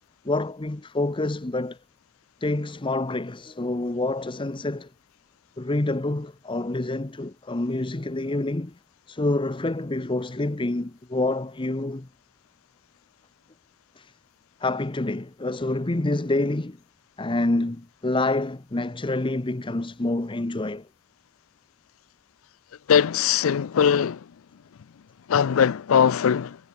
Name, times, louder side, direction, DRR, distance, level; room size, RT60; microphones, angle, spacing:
voice 1, 0.2-1.8 2.4-4.9 5.6-8.7 9.1-12.1 14.0-14.1 14.6-16.8 17.2-20.9, left 2 dB, 25° left, 0.8 m, -27 dB
voice 2, 22.9-24.2 25.3-26.6, left 7 dB, 90° left, 0.4 m, -20 dB
head